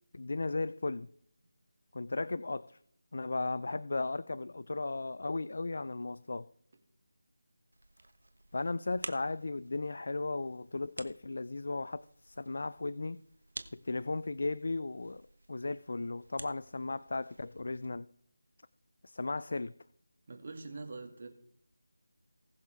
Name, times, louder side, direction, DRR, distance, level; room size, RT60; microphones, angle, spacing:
voice 1, 0.1-1.1 1.9-2.8 3.1-6.5 8.5-13.2 13.7-18.1 19.0-19.7, left 3 dB, 60° left, 0.3 m, -36 dB
sound 1, 7.7-17.9, right 1 dB, 85° right, 1.2 m, -51 dB
voice 2, 20.3-21.3, right 3 dB, 45° right, 2.2 m, -44 dB
19.5 x 6.7 x 3.5 m
figure-of-eight pair, 165°, 0 cm